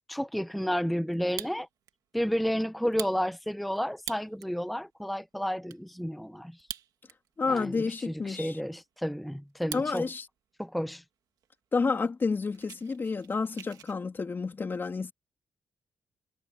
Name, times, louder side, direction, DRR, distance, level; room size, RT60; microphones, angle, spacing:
voice 1, 0.1-1.7 2.1-6.6 7.5-10.1 10.6-11.0, equal, ahead, 0.7 m, -31 dB
Fire, 1.1-1.9 2.3-2.4 2.8-4.6 5.1-5.2 5.3-5.8 6.5-7.4 7.7-7.8 8.3-10.0 10.4-10.8 11.4-11.5 11.7-11.9 12.2-14.0, right 10 dB, 85° right, 2.0 m, -43 dB
voice 2, 7.4-8.6 9.7-10.2 11.7-15.1, left 4 dB, 35° left, 3.1 m, -30 dB
cardioid pair, 105°, 6 cm